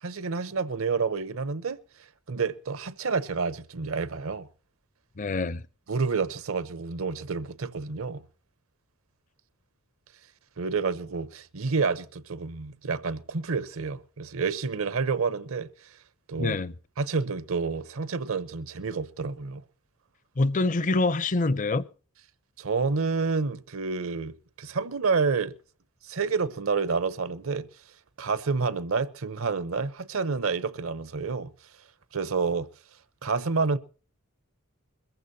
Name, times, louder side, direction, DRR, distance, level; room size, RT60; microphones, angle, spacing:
voice 1, 0.0-1.8 2.3-4.5 5.9-8.2 10.6-15.7 16.3-16.6 17.0-19.6 22.6-25.5 26.0-27.7 28.2-31.5 32.1-32.7 33.2-33.8, right 4 dB, 65° right, 0.8 m, -29 dB
voice 2, 5.2-5.6 16.4-16.7 20.4-21.8, left 3 dB, 35° left, 0.6 m, -25 dB
22.5 x 14.5 x 2.8 m
head